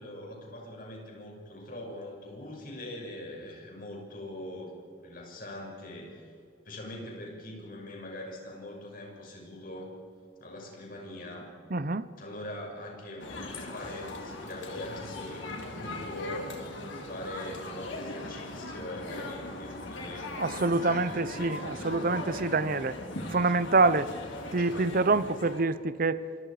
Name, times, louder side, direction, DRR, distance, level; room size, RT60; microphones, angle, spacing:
voice 1, 0.0-4.7 5.0-6.3 6.6-9.9 10.4-11.5 12.2-13.3 13.6-16.6 17.1-21.6, left 1 dB, 50° left, 6.3 m, -42 dB
voice 2, 11.7-12.1 20.4-23.0 23.3-24.1 24.5-26.2, right 3 dB, 50° right, 0.8 m, -26 dB
sound 1, 13.2-25.6, left 2 dB, 90° left, 3.8 m, -39 dB
27.5 x 24.5 x 5.0 m
head